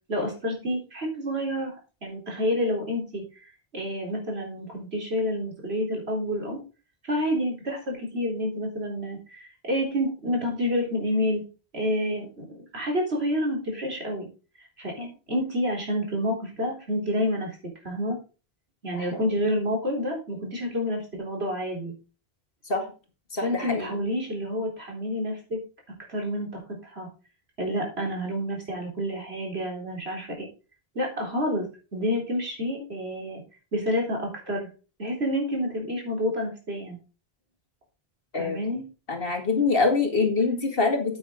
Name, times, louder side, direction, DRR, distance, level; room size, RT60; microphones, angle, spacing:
voice 1, 0.1-1.7 2.0-3.2 3.7-6.6 7.1-11.4 11.7-12.5 12.7-14.3 14.8-17.6 17.8-18.2 18.8-21.9 23.4-25.6 26.1-26.5 26.8-27.1 27.6-30.5 30.9-31.7 31.9-33.4 33.7-34.7 35.0-37.0 38.4-38.8, equal, 85° right, 0 dB, 4.2 m, -28 dB
voice 2, 23.3-23.9 38.3-38.6 39.1-41.2, left 4 dB, 65° left, 3 dB, 2.4 m, -25 dB
9.2 x 8.6 x 3.8 m, 0.33 s
omnidirectional pair, 1.0 m